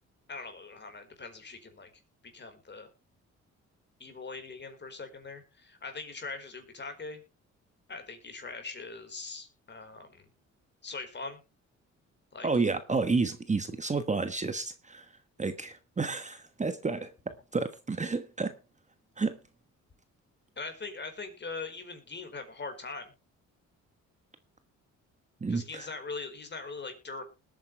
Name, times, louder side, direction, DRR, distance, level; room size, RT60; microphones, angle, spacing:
voice 1, 0.3-1.9 2.3-2.9 4.0-7.2 7.9-10.1 10.8-11.4 12.3-12.5 20.6-23.1 25.5-27.2, left 4 dB, 35° left, 6 dB, 4.6 m, -41 dB
voice 2, 12.4-15.0 15.4-17.1 17.5-18.5 19.2-19.4 25.4-25.9, right 4 dB, 25° right, 10 dB, 1.3 m, -30 dB
20.5 x 8.9 x 3.3 m, 0.30 s
cardioid pair, 90°, 30 cm